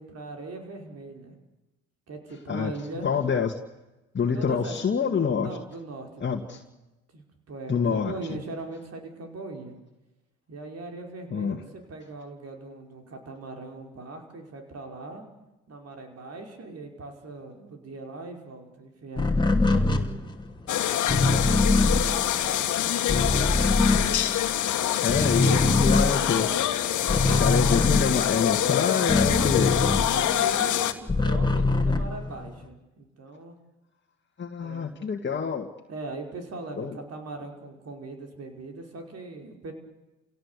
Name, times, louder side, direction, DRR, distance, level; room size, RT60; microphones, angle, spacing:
voice 1, 0.0-1.3 2.1-3.1 4.3-4.8 5.4-6.6 7.1-9.7 10.5-15.2 15.7-20.0 20.8-24.5 25.4-26.2 30.1-33.6 34.6-34.9 35.9-39.7, right 3 dB, 55° right, 3 dB, 5.4 m, -40 dB
voice 2, 3.0-3.6 4.1-5.5 6.2-6.6 7.7-8.4 11.3-11.6 25.0-26.6 27.3-29.7 34.4-35.7 36.8-37.0, left 6 dB, 35° left, 2 dB, 2.1 m, -26 dB
sound 1, 19.2-24.7 25.0-30.5 30.8-32.7, left 2 dB, 15° left, 2.7 m, -24 dB
sound 2, 20.7-30.9, left 11 dB, 75° left, 1.9 m, -25 dB
30.0 x 17.0 x 8.4 m, 1.1 s
cardioid pair, 90°, 30 cm